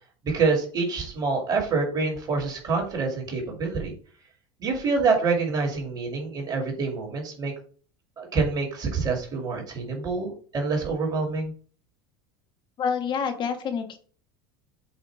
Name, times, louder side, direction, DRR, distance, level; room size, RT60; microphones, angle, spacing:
voice 1, 0.2-3.9 4.6-7.5 8.2-11.5, right 4 dB, 35° right, 0 dB, 2.5 m, -26 dB
voice 2, 12.8-14.0, left 6 dB, 40° left, 6 dB, 1.3 m, -27 dB
8.2 x 2.8 x 4.7 m, 0.44 s
supercardioid pair, 115°, 12 cm